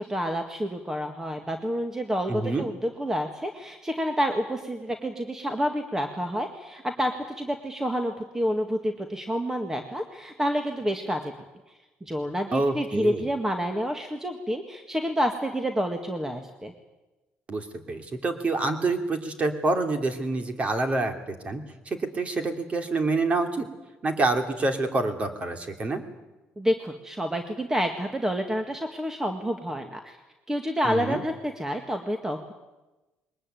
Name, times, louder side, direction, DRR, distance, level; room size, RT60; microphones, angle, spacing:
voice 1, 0.0-11.3 12.0-16.7 26.6-30.2 30.5-32.5, equal, 10° right, 5 dB, 1.8 m, -29 dB
voice 2, 2.3-2.7 12.5-13.2 17.5-23.7 24.0-26.0 30.8-31.2, right 3 dB, 30° right, 6 dB, 2.9 m, -27 dB
21.5 x 20.0 x 9.2 m, 1.1 s
cardioid pair, 110°, 4 cm